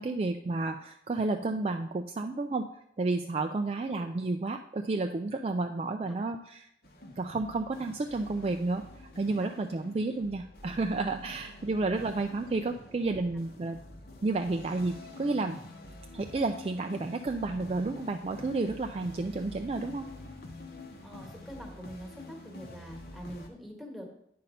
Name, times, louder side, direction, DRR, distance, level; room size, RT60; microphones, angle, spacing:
voice 1, 0.0-2.7 3.0-6.7 7.2-13.8 14.2-15.6 16.1-20.1, right 3 dB, 35° right, 5 dB, 0.3 m, -31 dB
sound 1, 6.8-23.5, left 1 dB, 60° left, 0.9 m, -48 dB
voice 2, 21.0-24.0, equal, ahead, 0 dB, 1.4 m, -45 dB
9.3 x 4.2 x 5.3 m, 0.75 s
head